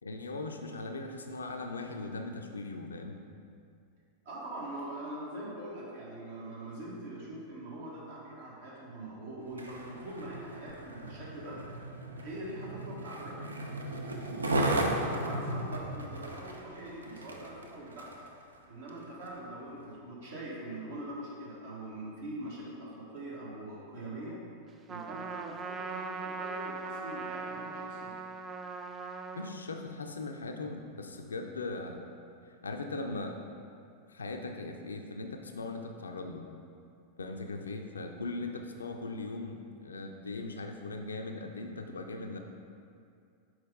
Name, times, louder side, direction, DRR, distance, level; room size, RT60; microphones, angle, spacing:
voice 1, 0.0-3.2 29.3-32.0 32.6-33.4 34.1-36.4 37.2-42.4, left 3 dB, 75° left, 4 dB, 0.5 m, -39 dB
voice 2, 4.2-11.6 12.2-13.6 14.2-18.1 18.7-24.4 24.9-28.2, right 1 dB, 60° right, -5 dB, 1.3 m, -43 dB
Skateboard, 9.4-18.3 18.9-19.0, right 1 dB, 75° right, 0.5 m, -35 dB
Trumpet, 24.9-29.6, right 4 dB, 25° right, 0.3 m, -40 dB
6.3 x 4.6 x 3.6 m, 2.4 s
figure-of-eight pair, 90°, 0 cm